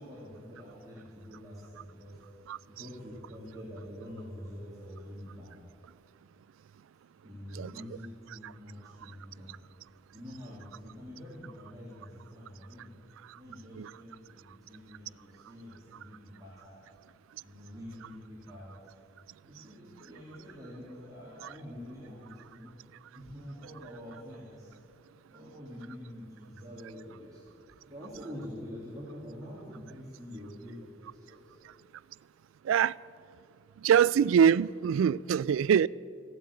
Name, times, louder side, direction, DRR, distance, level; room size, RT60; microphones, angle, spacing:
voice 1, 0.0-2.2 2.7-5.6 7.2-9.6 10.1-13.0 13.3-16.9 17.4-18.9 19.4-22.8 23.1-24.8 25.3-31.6, equal, 20° right, 2.6 m, -46 dB
voice 2, 33.8-35.9, right 8 dB, 85° right, 0.3 m, -23 dB
15.5 x 9.1 x 8.4 m
head